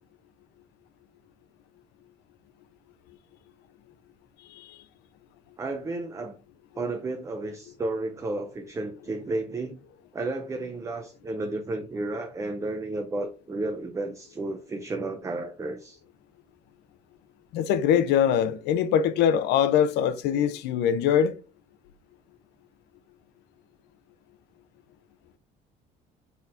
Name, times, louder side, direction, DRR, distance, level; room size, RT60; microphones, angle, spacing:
voice 1, 5.6-6.4 6.8-9.8 10.1-16.0, right 2 dB, 20° right, 0.4 m, -32 dB
voice 2, 17.5-21.3, left 9 dB, 85° left, 0.4 m, -23 dB
4.1 x 4.0 x 2.4 m
cardioid pair, 110°, 17 cm